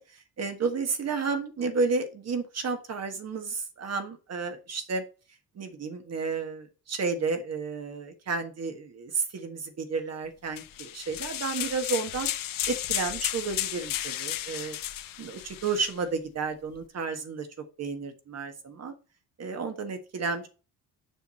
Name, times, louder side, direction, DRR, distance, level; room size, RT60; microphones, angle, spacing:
voice 1, 0.0-5.0 5.5-12.3 12.7-14.8 15.2-17.5 17.8-18.9 19.4-20.5, right 4 dB, 45° right, 7 dB, 1.5 m, -32 dB
sound 1, 10.6-16.0, left 12 dB, 60° left, 0.8 m, -33 dB
7.1 x 5.9 x 4.3 m, 0.34 s
cardioid pair, 130°, 37 cm